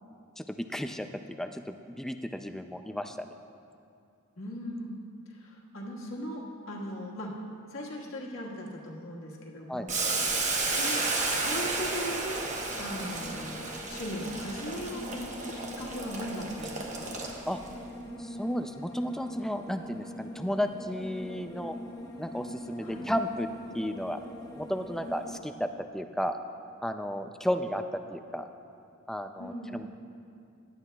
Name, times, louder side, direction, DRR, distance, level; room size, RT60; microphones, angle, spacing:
voice 1, 0.4-3.3 4.7-4.9 9.7-9.9 17.5-17.6 18.2-21.8 22.2-23.5 23.7-24.2 24.6-26.4 26.8-27.8 28.1-28.5 29.1-29.9, equal, ahead, 7 dB, 0.3 m, -33 dB
voice 2, 4.4-5.0 5.3-7.3 7.7-10.0 10.7-11.0 11.4-12.4 12.8-17.1 22.8-23.0 29.4-29.8, equal, 75° left, -2 dB, 1.6 m, -39 dB
Boiling, 9.9-17.7, right 3 dB, 35° right, 1.1 m, -32 dB
sound 1, 12.6-25.4, left 1 dB, 20° left, 0.8 m, -44 dB
17.0 x 11.0 x 2.3 m, 2.5 s
head